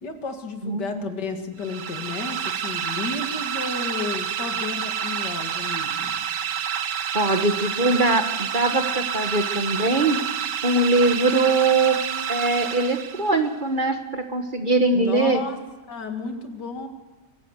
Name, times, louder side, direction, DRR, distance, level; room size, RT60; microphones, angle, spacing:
voice 1, 0.0-6.2 14.9-15.6 15.9-16.9, left 4 dB, 85° left, 5 dB, 2.7 m, -32 dB
voice 2, 0.6-1.1 7.1-10.2 10.6-12.0 12.3-15.4, right 2 dB, 30° right, 6 dB, 1.3 m, -22 dB
sound 1, 1.6-13.5, right 8 dB, 90° right, 1.7 m, -28 dB
24.0 x 15.5 x 8.1 m, 1.2 s
omnidirectional pair, 1.8 m